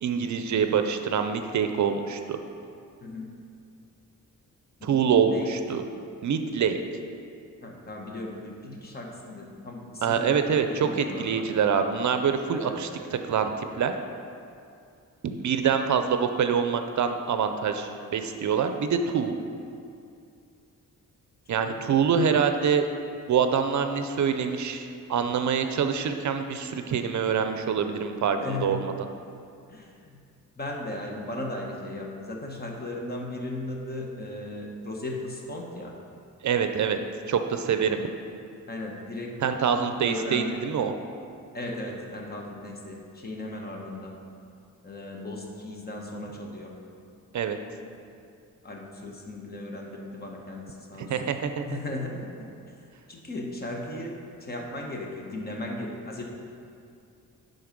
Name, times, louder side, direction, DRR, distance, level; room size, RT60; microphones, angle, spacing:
voice 1, 0.0-2.4 4.8-5.8 6.2-6.8 10.0-13.9 15.2-19.3 21.5-22.9 23.3-28.9 36.4-37.0 37.3-38.1 39.4-40.9 47.3-47.6 51.0-51.8, right 7 dB, 60° right, 7 dB, 0.6 m, -25 dB
voice 2, 3.0-3.3 4.8-5.5 7.6-11.4 12.6-12.8 21.6-21.8 28.4-28.9 29.7-30.2 30.6-35.9 37.6-37.7 38.7-40.6 41.5-44.2 44.8-46.7 48.6-51.1 51.6-52.5 53.1-56.2, left 2 dB, 30° left, 0 dB, 1.1 m, -37 dB
11.0 x 3.9 x 5.2 m, 2.4 s
wide cardioid pair, 135°, 33 cm